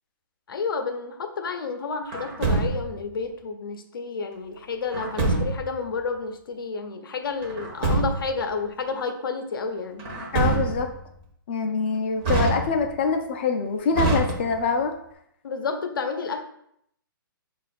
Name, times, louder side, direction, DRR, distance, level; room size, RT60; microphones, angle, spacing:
voice 1, 0.5-10.1 15.4-16.4, left 4 dB, 70° left, 6 dB, 0.6 m, -30 dB
Truck, 2.1-3.1 4.9-5.8 7.4-8.4 10.0-11.0 12.2-13.1 13.9-14.8, right 3 dB, 25° right, 0.6 m, -25 dB
voice 2, 10.3-10.9 11.5-14.9, left 5 dB, 30° left, 4 dB, 0.4 m, -24 dB
4.1 x 2.4 x 4.0 m, 0.72 s
hypercardioid pair, 165°, 12 cm